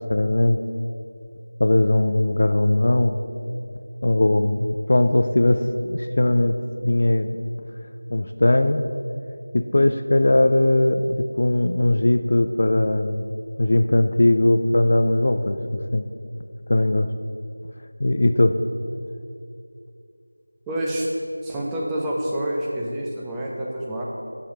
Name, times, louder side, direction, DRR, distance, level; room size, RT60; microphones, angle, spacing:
voice 1, 0.1-0.6 1.6-3.2 4.0-6.6 6.8-7.4 8.1-8.9 9.5-13.2 13.6-15.6 15.9-16.1 16.7-17.1 18.0-18.6, left 1 dB, 45° left, 9 dB, 0.3 m, -19 dB
voice 2, 20.7-21.1 21.4-24.0, right 1 dB, 5° right, -5 dB, 0.5 m, -27 dB
5.7 x 5.5 x 6.3 m, 2.5 s
figure-of-eight pair, 170°, 0 cm